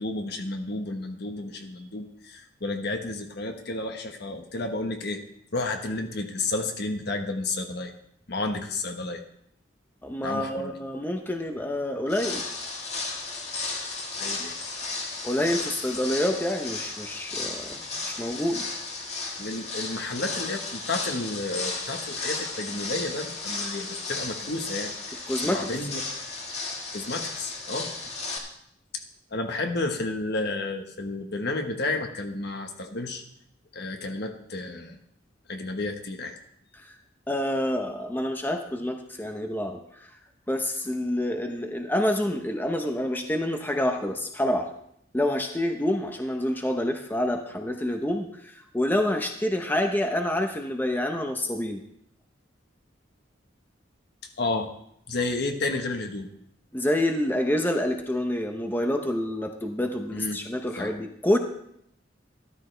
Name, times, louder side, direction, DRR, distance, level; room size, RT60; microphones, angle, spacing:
voice 1, 0.0-5.2 5.5-7.9 8.3-9.2 10.2-10.8 14.2-14.5 19.4-26.0 26.9-27.9 29.3-33.2 33.7-35.0 35.5-36.4 54.4-54.7 55.1-56.3 60.1-60.4 60.8-60.9, left 2 dB, 60° left, 4 dB, 1.4 m, -31 dB
voice 2, 10.0-12.4 15.2-17.8 18.2-18.7 25.3-25.7 36.7-37.0 37.3-40.1 40.5-44.7 45.1-51.8 56.7-61.4, left 1 dB, 10° left, 4 dB, 0.8 m, -27 dB
sound 1, 12.1-28.4, left 3 dB, 35° left, 1.9 m, -34 dB
13.0 x 12.5 x 3.4 m, 0.72 s
head